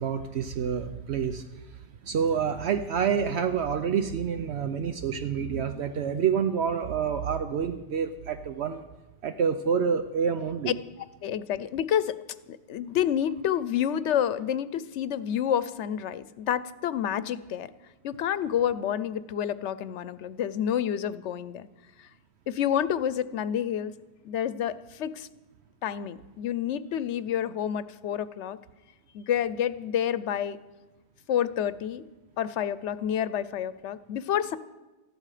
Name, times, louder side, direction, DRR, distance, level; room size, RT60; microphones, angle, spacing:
voice 1, 0.0-1.4 2.0-8.8 9.2-10.8, right 7 dB, 70° right, 9 dB, 1.0 m, -28 dB
voice 2, 11.2-12.2 12.5-17.7 18.0-21.7 22.0-22.1 22.5-23.9 24.2-25.3 25.8-28.6 29.1-30.6 31.3-32.0 32.4-34.6, left 9 dB, 85° left, 16 dB, 1.0 m, -29 dB
18.5 x 14.0 x 5.0 m, 1.1 s
omnidirectional pair, 1.2 m